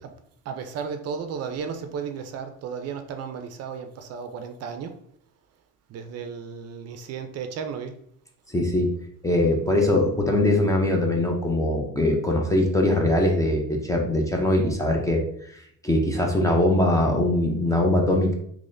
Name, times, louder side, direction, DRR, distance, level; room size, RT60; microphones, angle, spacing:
voice 1, 0.5-4.9 5.9-7.9, right 6 dB, 55° right, 0.4 m, -34 dB
voice 2, 8.5-8.9 9.2-15.2 15.5-18.3, left 1 dB, 10° left, 0.4 m, -22 dB
3.9 x 2.9 x 2.5 m
cardioid pair, 150°, 31 cm